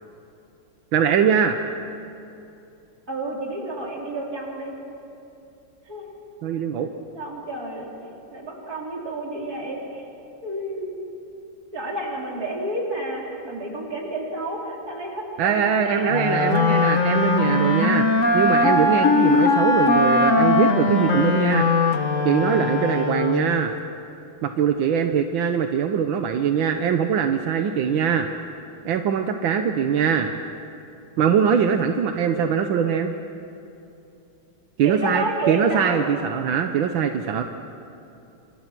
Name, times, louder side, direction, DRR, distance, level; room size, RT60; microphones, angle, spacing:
voice 1, 0.9-1.6 6.4-6.9 15.4-18.0 18.3-21.7 22.2-23.7 24.4-28.3 28.8-30.3 31.2-33.1 34.8-37.4, right 7 dB, 85° right, 6 dB, 1.7 m, -22 dB
voice 2, 3.1-4.7 5.9-6.0 7.1-7.9 8.3-10.1 10.4-11.0 11.7-16.2 17.2-17.3 34.8-36.0, right 1 dB, 50° right, -2 dB, 4.7 m, -30 dB
Wind instrument woodwind instrument, 16.1-23.6, left 3 dB, 45° left, 1.6 m, -20 dB
28.5 x 26.5 x 6.1 m, 2.7 s
omnidirectional pair, 2.1 m